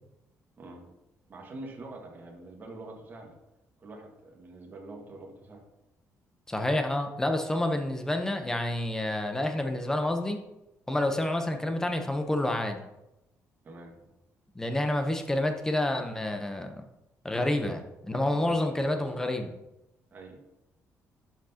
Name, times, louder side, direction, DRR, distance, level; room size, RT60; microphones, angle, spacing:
voice 1, 0.5-0.9 1.3-3.4 3.8-5.6 13.6-14.0 17.6-17.7 18.1-19.1 20.1-20.4, right 2 dB, 35° right, 0 dB, 1.7 m, -45 dB
voice 2, 6.5-10.4 10.9-12.8 14.5-16.8 17.2-19.5, left 1 dB, 10° left, 5 dB, 0.9 m, -29 dB
11.5 x 5.9 x 2.9 m, 0.92 s
cardioid pair, 140°, 6 cm